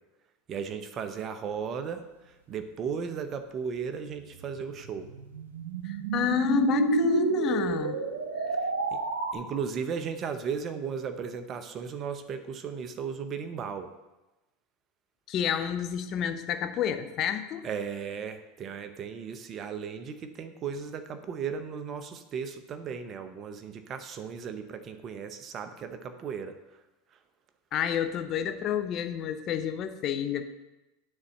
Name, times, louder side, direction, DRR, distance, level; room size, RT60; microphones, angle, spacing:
voice 1, 0.5-5.1 8.5-9.0 9.3-13.9 17.6-26.8, right 6 dB, 40° right, 9 dB, 0.7 m, -36 dB
sound 1, 4.4-9.3, right 3 dB, 90° right, 0.8 m, -29 dB
voice 2, 5.8-8.0 15.3-17.7 27.7-30.5, left 9 dB, 45° left, 9 dB, 0.7 m, -29 dB
9.6 x 4.1 x 6.4 m, 1.0 s
hypercardioid pair, 85°, 0 cm